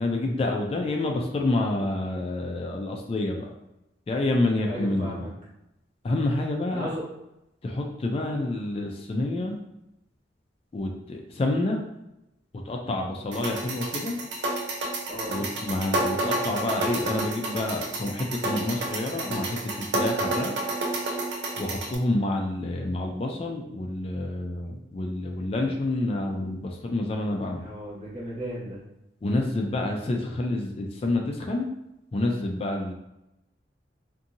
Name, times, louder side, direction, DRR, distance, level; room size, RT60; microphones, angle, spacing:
voice 1, 0.0-3.5 4.1-5.3 6.0-6.9 7.6-9.6 10.7-11.8 12.7-14.2 15.3-20.5 21.5-27.7 29.2-31.7 32.1-32.9, left 2 dB, 35° left, 1 dB, 0.3 m, -28 dB
voice 2, 4.7-5.3 6.7-7.0 15.1-15.4 27.6-28.8, equal, 40° right, -6 dB, 1.1 m, -35 dB
sound 1, 13.3-21.9, right 2 dB, 70° right, 0.5 m, -30 dB
2.6 x 2.6 x 2.6 m, 0.89 s
head